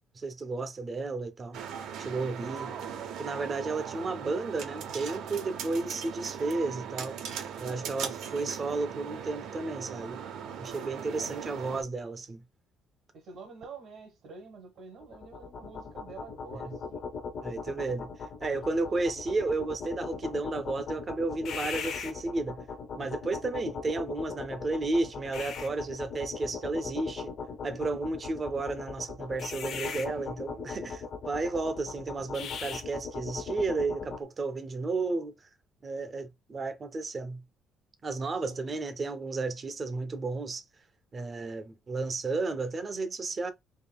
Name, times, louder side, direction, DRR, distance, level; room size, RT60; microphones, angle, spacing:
voice 1, 0.1-1.6 2.0-2.7 3.2-7.2 7.6-10.2 10.6-12.4 17.4-22.6 23.0-27.3 27.6-35.3 35.8-37.4 38.0-40.6 41.1-43.5, right 3 dB, 25° right, 0.5 m, -33 dB
sound 1, 1.5-11.8, right 8 dB, 75° right, 0.7 m, -39 dB
voice 2, 2.6-3.8 11.1-11.3 13.1-17.0 18.6-19.0 38.3-38.8, right 4 dB, 55° right, 1.0 m, -48 dB
sound 2, 15.0-34.2, left 5 dB, 50° left, 0.7 m, -39 dB
3.7 x 3.6 x 2.2 m
cardioid pair, 155°, 0 cm